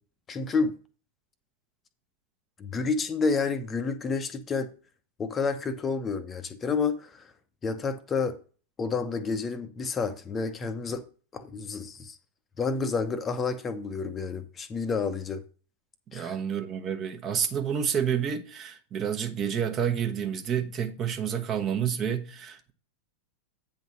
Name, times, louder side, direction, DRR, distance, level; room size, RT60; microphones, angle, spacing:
voice 1, 0.3-0.7 2.6-4.7 5.2-7.3 7.6-8.4 8.8-11.0 11.3-12.2 12.6-15.4 16.1-16.4, left 4 dB, 20° left, 0.8 m, -29 dB
voice 2, 16.1-22.7, right 8 dB, 30° right, 1.2 m, -29 dB
9.1 x 4.0 x 6.2 m
figure-of-eight pair, 90°, 0 cm